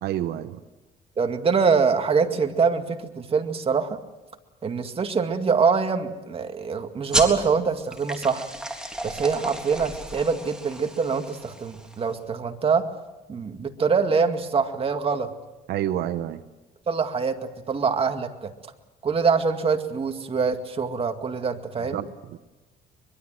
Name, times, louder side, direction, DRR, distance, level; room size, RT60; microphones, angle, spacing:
voice 1, 0.0-0.6 15.7-16.4 21.9-22.4, right 12 dB, 75° right, 10 dB, 0.9 m, -29 dB
voice 2, 1.2-4.0 4.6-8.5 9.0-12.9 13.3-15.3 16.9-18.5 19.0-22.0, right 5 dB, 35° right, 6 dB, 2.2 m, -24 dB
sound 1, 7.1-12.2, right 1 dB, 5° right, 3.7 m, -33 dB
24.0 x 22.5 x 7.8 m, 1.1 s
cardioid pair, 110°, 17 cm